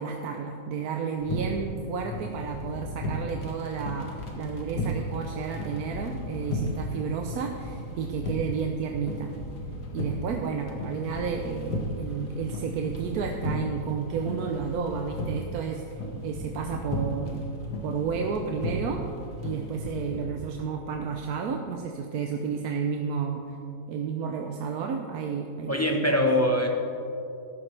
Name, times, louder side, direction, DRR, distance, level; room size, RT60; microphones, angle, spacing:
voice 1, 0.0-9.3 9.9-17.4 17.8-19.0 19.4-23.6 23.9-26.2, right 6 dB, 70° right, 3 dB, 1.1 m, -32 dB
sound 1, 1.2-20.3, equal, 80° left, 1.9 m, -35 dB
voice 2, 25.7-26.7, left 1 dB, 15° left, 1 dB, 0.7 m, -23 dB
14.0 x 11.0 x 3.3 m, 2.6 s
omnidirectional pair, 1.7 m